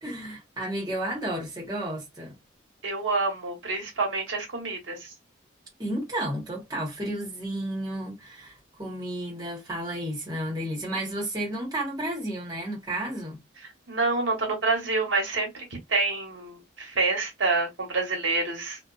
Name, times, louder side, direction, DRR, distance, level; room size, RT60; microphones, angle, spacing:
voice 1, 0.0-2.4 5.8-13.4, right 1 dB, 20° right, 1.0 m, -32 dB
voice 2, 2.8-5.0 13.9-15.5 15.9-18.8, right 3 dB, 80° right, 1.0 m, -27 dB
2.5 x 2.2 x 2.3 m
head